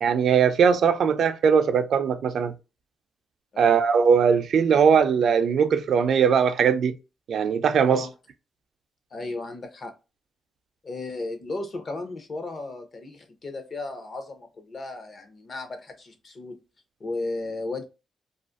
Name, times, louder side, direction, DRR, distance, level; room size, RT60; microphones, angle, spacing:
voice 1, 0.0-2.5 3.6-6.9 7.3-8.1, right 6 dB, 65° right, 0.3 m, -20 dB
voice 2, 9.1-9.9 10.8-16.6 17.0-17.8, left 2 dB, 40° left, 0.6 m, -35 dB
2.5 x 2.4 x 2.4 m
wide cardioid pair, 155°, 0 cm